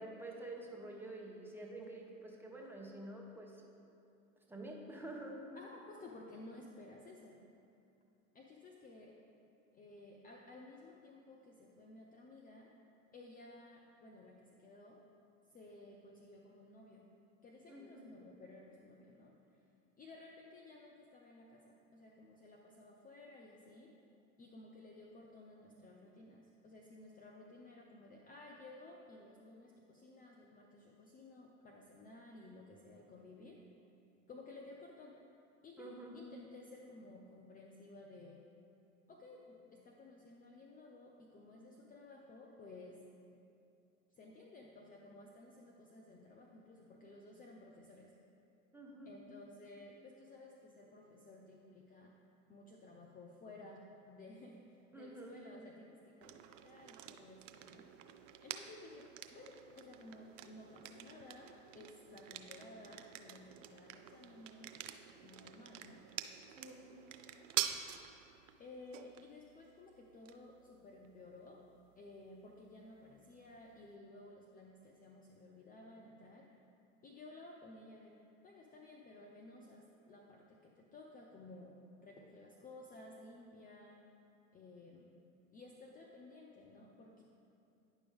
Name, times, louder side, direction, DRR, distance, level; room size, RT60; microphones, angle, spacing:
voice 1, 0.0-3.6 4.5-5.4 17.7-18.1 35.8-36.2 48.7-49.1 54.9-55.4 66.6-66.9, right 2 dB, 5° right, -2 dB, 1.1 m, -48 dB
voice 2, 5.5-7.4 8.3-9.2 9.7-12.7 13.1-15.0 15.5-17.0 17.4-19.6 20.0-23.9 24.4-33.6 34.3-35.2 35.6-38.4 39.1-43.0 44.2-48.1 49.1-52.1 52.5-57.9 58.4-64.8 65.2-66.0 68.6-71.6 72.0-76.5 77.0-78.2 78.4-84.0 84.5-85.1 85.5-87.2, left 2 dB, 20° left, 0 dB, 0.6 m, -55 dB
sound 1, 56.2-73.9, right 10 dB, 70° right, 0.5 m, -48 dB
9.5 x 5.4 x 3.5 m, 2.7 s
hypercardioid pair, 80°, 39 cm